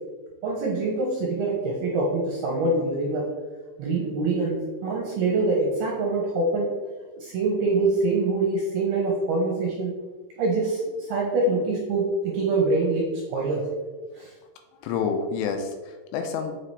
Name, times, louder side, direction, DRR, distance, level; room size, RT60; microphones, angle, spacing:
voice 1, 0.4-3.3 3.8-6.7 7.2-9.9 10.4-13.7 14.1-14.3, right 3 dB, 70° right, -2 dB, 2.5 m, -25 dB
voice 2, 14.8-16.6, left 6 dB, 85° left, 5 dB, 3.2 m, -28 dB
7.5 x 5.9 x 3.3 m, 1.3 s
omnidirectional pair, 5.7 m